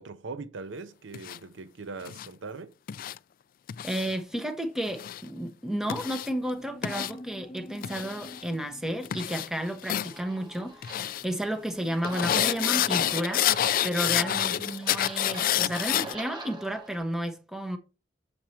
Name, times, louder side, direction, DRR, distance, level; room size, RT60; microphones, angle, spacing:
voice 1, 0.0-2.7 14.0-14.6, right 4 dB, 75° right, 0.6 m, -40 dB
sound 1, 1.1-1.4 2.1-2.3 2.9-3.2 3.7-4.2 4.9-5.2 5.9-6.3 6.8-7.1 7.8-8.4 9.0-9.5 9.8-10.1 10.8-11.2 12.0-16.1, left 11 dB, 50° left, 0.3 m, -28 dB
voice 2, 3.8-13.5 13.8-17.8, equal, 5° right, 1.1 m, -32 dB
sound 2, 6.2-12.8, left 1 dB, 25° left, 1.5 m, -48 dB
sound 3, 10.1-17.0, right 2 dB, 25° right, 1.7 m, -45 dB
7.2 x 4.7 x 4.4 m
head